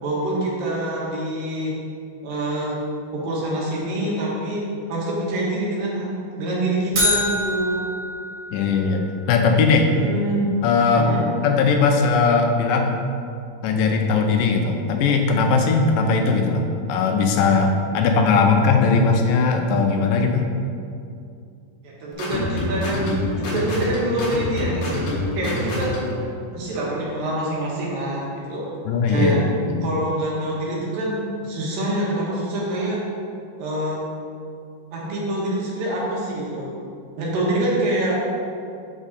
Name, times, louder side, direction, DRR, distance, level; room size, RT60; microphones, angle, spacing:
voice 1, 0.0-1.8 2.2-2.8 3.1-6.1 6.4-7.8 9.9-10.5 10.9-11.2 21.8-25.1 25.3-26.0 26.5-28.7 29.1-29.4 29.8-33.0 33.6-34.0 34.9-36.7 37.1-38.2, right 1 dB, 75° right, -5 dB, 3.1 m, -25 dB
sound 1, 6.9-9.1, left 1 dB, 50° right, 1.6 m, -25 dB
voice 2, 8.5-9.9 10.6-11.1 11.4-13.0 13.6-20.5 28.9-29.4 29.7-29.9, left 4 dB, 80° left, 3 dB, 2.2 m, -19 dB
sound 2, 22.1-26.2, left 2 dB, 55° left, 2.2 m, -26 dB
6.3 x 6.1 x 4.1 m, 2.4 s
omnidirectional pair, 4.1 m